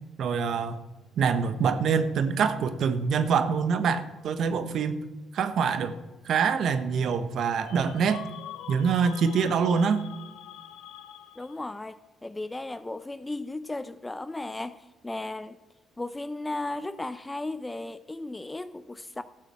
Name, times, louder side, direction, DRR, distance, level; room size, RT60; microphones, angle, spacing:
voice 1, 0.2-0.8 1.2-4.9 5.3-5.9 6.2-8.2 8.7-10.0, right 6 dB, 65° right, 11 dB, 1.1 m, -25 dB
sound 1, 7.6-11.8, left 11 dB, 85° left, 0.7 m, -45 dB
voice 2, 11.4-15.6 16.0-19.2, left 2 dB, 15° left, 13 dB, 0.5 m, -35 dB
13.0 x 6.7 x 7.5 m, 1.2 s
cardioid pair, 90°, 0 cm